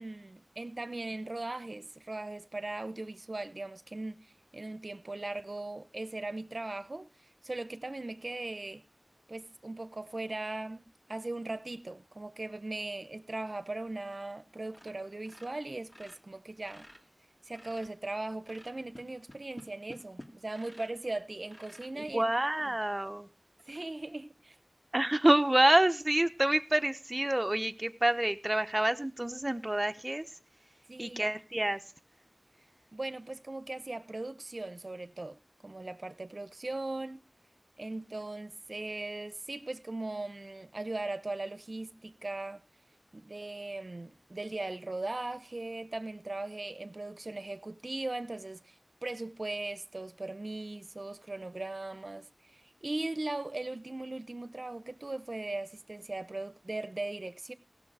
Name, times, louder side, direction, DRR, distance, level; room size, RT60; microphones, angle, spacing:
voice 1, 0.0-7.1 7.4-8.8 9.3-16.9 17.5-22.2 22.6-22.8 23.7-24.6 30.9-31.2 32.9-37.3 37.8-42.6 43.1-57.5, right 2 dB, 60° right, 0.7 m, -39 dB
sound 1, 14.0-14.4 14.7-15.0 15.2-18.0 18.4-21.1 21.4-21.9 22.6-22.7 23.1-23.2 23.6-23.8, left 1 dB, 35° left, 2.4 m, -52 dB
voice 2, 22.1-23.3 24.9-30.2 31.0-31.8, right 1 dB, 30° right, 0.8 m, -27 dB
17.5 x 6.5 x 4.8 m
wide cardioid pair, 55°, 0 cm